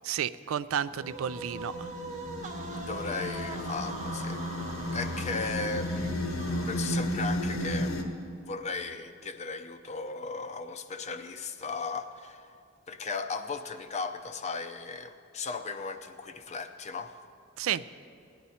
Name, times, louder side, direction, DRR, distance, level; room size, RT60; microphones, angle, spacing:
voice 1, 0.0-1.9 17.6-17.8, right 9 dB, 70° right, 15 dB, 0.3 m, -31 dB
sound 1, 0.9-8.0, left 1 dB, 70° left, 1.2 m, -33 dB
sound 2, 1.0-7.3, right 2 dB, 35° right, 0.8 m, -42 dB
voice 2, 2.7-4.4 4.9-6.3 6.7-7.9 8.5-12.5 12.9-17.1, left 4 dB, 30° left, 8 dB, 0.6 m, -36 dB
17.5 x 10.5 x 4.2 m, 2.5 s
head